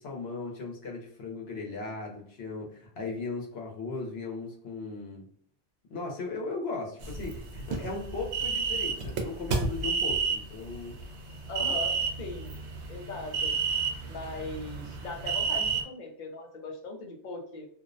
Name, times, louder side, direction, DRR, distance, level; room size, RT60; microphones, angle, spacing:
voice 1, 0.0-5.3 5.9-11.0, left 3 dB, 70° left, 0 dB, 1.0 m, -37 dB
sound 1, 7.0-15.8, right 5 dB, 85° right, 0.9 m, -31 dB
voice 2, 11.5-12.5 12.9-13.6 14.1-17.7, left 2 dB, 55° left, 2 dB, 0.6 m, -39 dB
2.5 x 2.0 x 2.5 m, 0.63 s
omnidirectional pair, 1.1 m